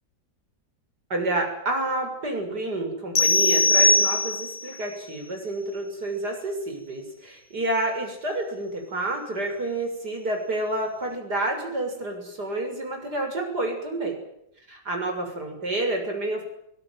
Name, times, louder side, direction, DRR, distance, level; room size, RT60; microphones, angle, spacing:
voice 1, 1.1-14.2 14.7-16.4, right 2 dB, 70° right, 3 dB, 7.3 m, -29 dB
sound 1, 3.2-4.7, left 2 dB, 70° left, 2.3 m, -20 dB
23.5 x 18.5 x 9.3 m, 0.78 s
omnidirectional pair, 1.8 m